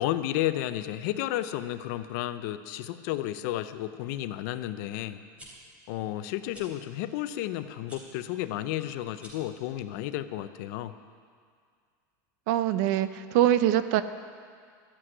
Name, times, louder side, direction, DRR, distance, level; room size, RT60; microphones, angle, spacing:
voice 1, 0.0-5.2 5.9-10.9, left 13 dB, 65° left, 12 dB, 0.6 m, -32 dB
sound 1, 5.4-5.5 6.5-6.7 7.8-8.0 9.1-9.5, equal, 10° right, 3.6 m, -49 dB
voice 2, 12.5-14.0, right 12 dB, 65° right, 13 dB, 0.6 m, -23 dB
12.5 x 7.8 x 9.7 m, 2.1 s
supercardioid pair, 140°, 10 cm